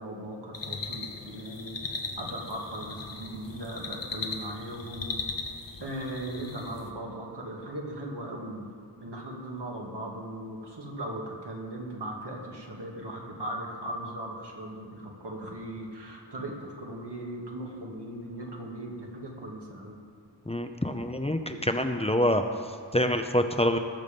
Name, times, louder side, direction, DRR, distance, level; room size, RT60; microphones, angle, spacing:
voice 1, 0.0-5.2 5.8-8.7 9.0-20.0, right 1 dB, 70° right, -1 dB, 2.5 m, -38 dB
sound 1, 0.5-6.9, left 4 dB, 80° left, 1.4 m, -38 dB
voice 2, 20.5-22.4 22.9-23.8, left 1 dB, 15° left, 6 dB, 0.7 m, -26 dB
20.0 x 7.2 x 5.4 m, 2.3 s
wide cardioid pair, 75°, 42 cm